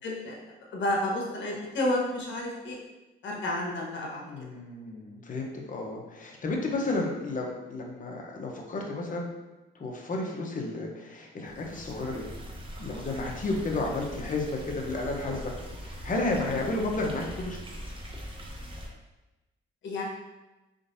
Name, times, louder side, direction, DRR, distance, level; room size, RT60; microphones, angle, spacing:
voice 1, 0.0-0.4 0.7-2.8 3.2-4.2 19.8-20.0, left 1 dB, 70° left, -1 dB, 1.2 m, -30 dB
voice 2, 4.2-9.3 9.7-12.2 12.8-15.5 15.8-17.6, left 2 dB, 40° left, 0 dB, 0.9 m, -32 dB
sound 1, 11.4-18.9, equal, 25° right, 0.9 m, -41 dB
4.5 x 3.8 x 2.7 m, 1.1 s
cardioid pair, 90°, 20 cm